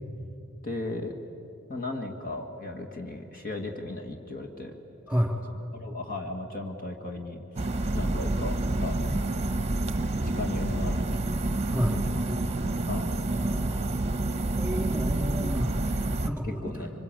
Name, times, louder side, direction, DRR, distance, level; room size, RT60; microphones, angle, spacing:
voice 1, 0.6-1.1 1.7-4.7 5.7-9.3 10.2-11.2 12.0-12.2 12.8-13.1 16.2-16.9, left 2 dB, 40° left, 3 dB, 1.8 m, -36 dB
sound 1, 7.6-16.3, right 2 dB, 30° right, 1.0 m, -28 dB
voice 2, 13.3-13.9 14.6-16.9, equal, 5° right, 3 dB, 3.1 m, -31 dB
26.0 x 25.0 x 8.9 m, 2.7 s
head